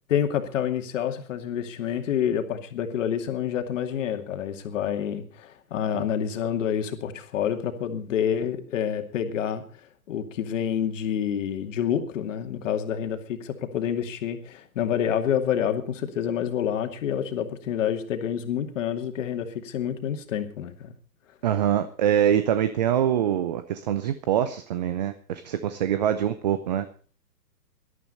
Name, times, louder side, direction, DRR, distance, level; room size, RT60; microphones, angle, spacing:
voice 1, 0.1-20.9, left 9 dB, 45° left, 2.5 m, -28 dB
voice 2, 21.4-26.9, right 10 dB, 25° right, 0.6 m, -24 dB
18.5 x 12.5 x 4.2 m
hypercardioid pair, 135°, 50 cm